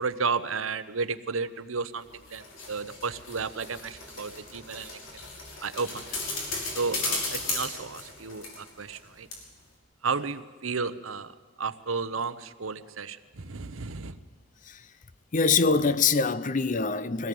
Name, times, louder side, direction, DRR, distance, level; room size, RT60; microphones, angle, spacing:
voice 1, 0.0-2.0 2.3-2.4 2.7-5.0 5.6-6.2 6.7-9.3 10.0-11.3 11.6-14.1, right 4 dB, 80° right, 0.9 m, -32 dB
sound 1, 2.0-9.0 9.3-9.4, left 3 dB, 75° left, 5.8 m, -36 dB
voice 2, 15.3-17.3, left 4 dB, 40° left, 0.7 m, -24 dB
23.0 x 17.0 x 7.8 m
head